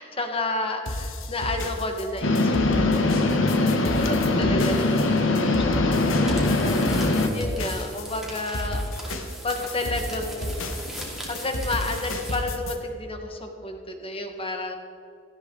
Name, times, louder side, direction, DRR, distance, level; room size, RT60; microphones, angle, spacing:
voice 1, 0.0-3.5 3.8-14.8, left 2 dB, 30° left, 4 dB, 1.5 m, -32 dB
sound 1, 0.9-12.8, left 1 dB, 90° left, 1.3 m, -32 dB
sound 2, 2.2-7.3, left 2 dB, 70° left, 1.2 m, -22 dB
sound 3, 6.2-12.5, right 1 dB, ahead, 2.4 m, -40 dB
17.0 x 13.5 x 3.9 m, 2.6 s
head